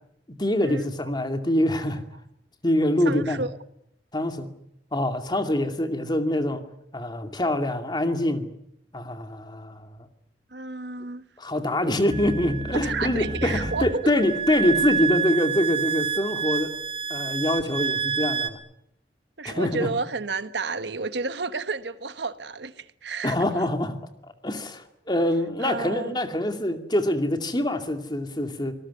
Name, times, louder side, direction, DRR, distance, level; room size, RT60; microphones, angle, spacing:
voice 1, 0.3-2.0 2.6-3.4 4.1-4.5 4.9-6.6 6.9-8.5 8.9-10.0 11.4-16.7 17.1-18.6 19.4-19.9 23.2-24.0 24.4-28.7, left 1 dB, 25° left, 2.4 m, -25 dB
voice 2, 3.0-3.6 10.5-11.2 12.8-14.0 19.4-23.4 25.6-26.2, right 4 dB, 75° right, 1.2 m, -31 dB
sound 1, 12.1-18.5, right 6 dB, 35° right, 2.0 m, -28 dB
25.0 x 19.5 x 9.7 m
head